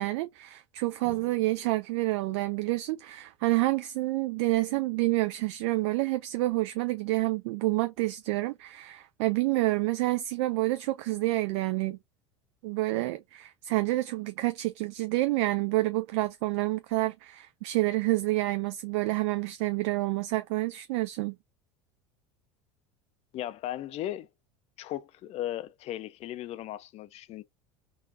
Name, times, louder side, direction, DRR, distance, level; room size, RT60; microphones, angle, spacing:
voice 1, 0.0-12.0 12.6-21.4, right 19 dB, 65° right, 0.4 m, -28 dB
sound 1, 1.0-3.2, right 8 dB, 40° right, 1.6 m, -55 dB
voice 2, 23.3-24.3 24.8-27.4, left 13 dB, 45° left, 0.5 m, -36 dB
3.8 x 2.4 x 2.7 m
hypercardioid pair, 80°, 15 cm